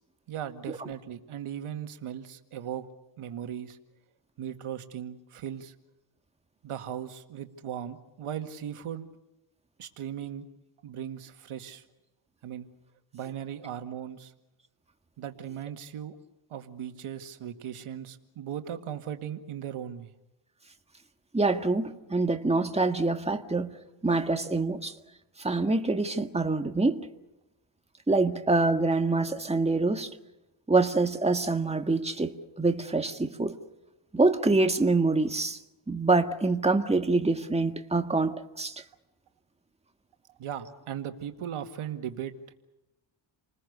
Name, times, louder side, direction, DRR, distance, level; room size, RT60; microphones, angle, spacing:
voice 1, 0.3-2.8 3.2-3.8 4.4-5.7 6.6-9.0 9.8-10.5 10.8-11.8 12.4-12.7 13.1-14.3 15.2-16.2 16.5-20.1 40.4-42.5, right 9 dB, 80° right, 2.0 m, -38 dB
voice 2, 21.3-23.7 24.0-24.9 25.4-27.0 28.1-30.1 30.7-33.6 34.1-35.6 35.9-38.8, right 3 dB, 10° right, 1.8 m, -25 dB
29.5 x 20.5 x 6.8 m
cardioid pair, 85°, 49 cm